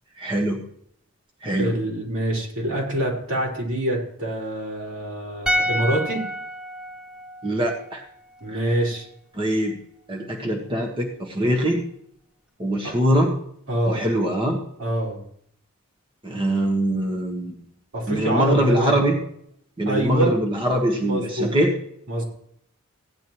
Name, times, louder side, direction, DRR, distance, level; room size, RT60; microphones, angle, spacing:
voice 1, 0.2-0.6 1.4-1.7 7.4-8.0 8.5-8.8 9.3-9.8 10.1-11.8 12.6-13.3 13.9-14.6 16.2-17.5 18.1-19.2 19.8-21.7, right 1 dB, 25° right, 0 dB, 1.4 m, -23 dB
voice 2, 1.6-6.2 8.4-9.1 12.8-12.9 13.7-14.0 14.8-15.2 17.9-19.1 19.9-20.3 21.0-21.6 22.1-22.2, right 1 dB, 75° right, -3 dB, 5.2 m, -25 dB
sound 1, 5.5-8.7 8.9-9.1, equal, 5° right, 0.4 m, -29 dB
16.5 x 10.5 x 3.1 m, 0.68 s
head